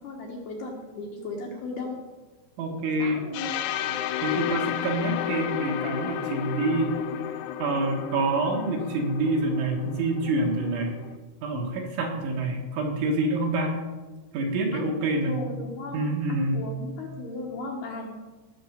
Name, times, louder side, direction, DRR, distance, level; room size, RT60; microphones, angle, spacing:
voice 1, 0.0-2.0 3.0-3.7 14.7-18.1, left 3 dB, 65° left, -1 dB, 2.7 m, -36 dB
voice 2, 2.6-3.2 4.2-7.0 7.6-11.0 11.4-13.8 14.3-15.4 15.9-16.7, right 2 dB, 70° right, 0 dB, 3.8 m, -27 dB
sound 1, 3.3-11.2, left 10 dB, 85° left, 2.8 m, -33 dB
19.0 x 6.8 x 5.2 m, 1.3 s
omnidirectional pair, 5.9 m